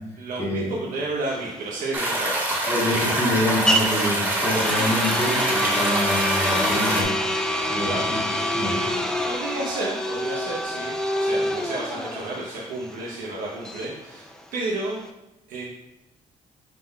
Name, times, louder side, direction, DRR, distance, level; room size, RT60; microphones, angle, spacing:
voice 1, 0.2-2.6 7.8-8.3 9.0-15.0 15.5-15.7, right 2 dB, 80° right, -3 dB, 0.9 m, -32 dB
sound 1, 1.3-15.1, equal, 5° left, 0.4 m, -27 dB
sound 2, 1.9-7.0, right 1 dB, 15° right, 1.0 m, -25 dB
voice 2, 2.7-7.1 7.7-8.2 8.5-8.8 11.3-11.4, left 1 dB, 20° left, -6 dB, 1.5 m, -26 dB
11.0 x 3.7 x 2.3 m, 0.92 s
cardioid pair, 155°, 14 cm